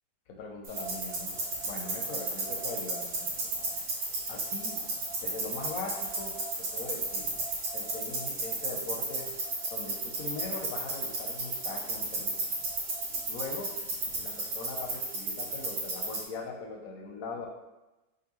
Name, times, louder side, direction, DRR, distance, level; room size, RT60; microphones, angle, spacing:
voice 1, 0.4-1.3 1.6-3.4 4.3-4.8 5.2-7.3 7.7-9.3 9.7-12.5 13.3-13.7 14.2-17.5, left 3 dB, 65° left, 1 dB, 0.9 m, -41 dB
sound 1, 0.6-16.2, right 2 dB, 75° right, 1.8 m, -34 dB
5.1 x 2.5 x 2.9 m, 1.0 s
omnidirectional pair, 1.8 m